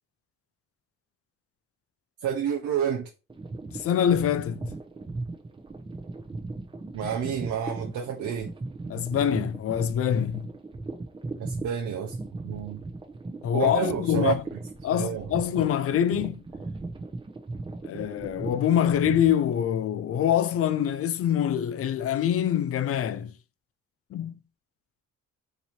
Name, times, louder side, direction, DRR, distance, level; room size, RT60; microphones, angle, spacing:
voice 1, 2.2-3.1 6.9-8.5 11.4-12.1 12.4-12.8 13.5-14.4 14.9-15.3, right 8 dB, 70° right, 0.8 m, -29 dB
sound 1, 3.3-19.4, right 3 dB, 15° right, 0.7 m, -37 dB
voice 2, 3.7-4.7 8.9-10.5 13.4-14.4 14.8-16.4 17.8-23.3 24.1-24.4, left 10 dB, 50° left, 0.5 m, -25 dB
3.0 x 2.7 x 4.3 m
cardioid pair, 90°, 30 cm